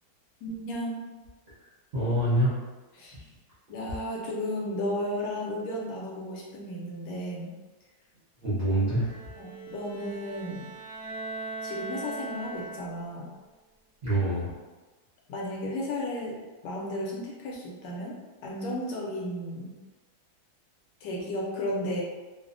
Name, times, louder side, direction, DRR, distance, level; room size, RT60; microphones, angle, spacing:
voice 1, 0.4-1.0 3.0-3.2 3.7-7.5 8.7-8.9 9.4-10.7 11.6-13.3 15.3-19.8 21.0-22.0, left 1 dB, 75° left, -2 dB, 1.1 m, -34 dB
voice 2, 1.9-2.6 3.1-3.2 8.4-9.1 14.0-14.6, right 1 dB, 65° right, -10 dB, 0.6 m, -26 dB
Bowed string instrument, 9.0-13.2, right 3 dB, 20° right, 0.6 m, -40 dB
3.1 x 2.0 x 2.5 m, 1.2 s
omnidirectional pair, 2.1 m